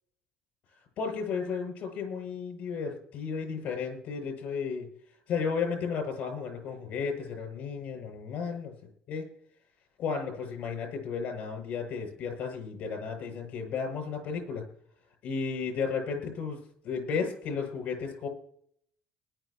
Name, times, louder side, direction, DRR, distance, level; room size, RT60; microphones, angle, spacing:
voice 1, 1.0-4.9 5.3-8.7 9.1-9.2 10.0-14.6 15.2-16.6 16.8-18.3, left 5 dB, 65° left, 3 dB, 7.7 m, -33 dB
20.5 x 12.5 x 3.1 m, 0.64 s
cardioid pair, 110°, 3 cm